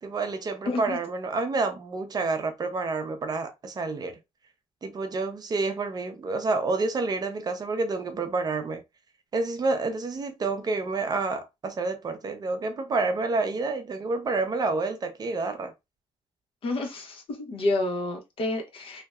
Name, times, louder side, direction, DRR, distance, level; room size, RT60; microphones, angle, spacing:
voice 1, 0.0-4.2 4.8-8.8 9.3-15.7, right 3 dB, 35° right, 0.6 m, -29 dB
voice 2, 0.7-1.0 16.6-17.2 17.5-19.0, left 2 dB, 55° left, 1.0 m, -29 dB
2.7 x 2.2 x 2.3 m
cardioid pair, 85°, 11 cm